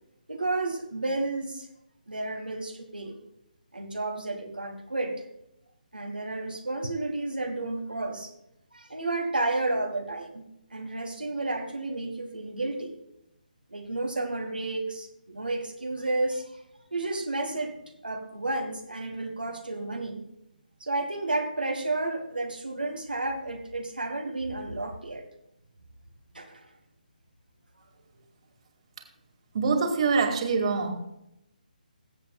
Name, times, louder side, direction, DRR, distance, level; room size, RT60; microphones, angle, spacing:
voice 1, 0.3-1.7 2.1-3.2 3.7-5.2 5.9-8.3 8.7-10.4 10.7-12.9 13.7-16.6 16.9-17.7 18.0-20.2 20.8-25.2 26.3-26.7, right 2 dB, 85° right, 3 dB, 1.3 m, -31 dB
voice 2, 29.5-30.9, right 4 dB, 40° right, 4 dB, 1.9 m, -24 dB
21.0 x 7.8 x 2.3 m, 0.81 s
figure-of-eight pair, 145°, 5 cm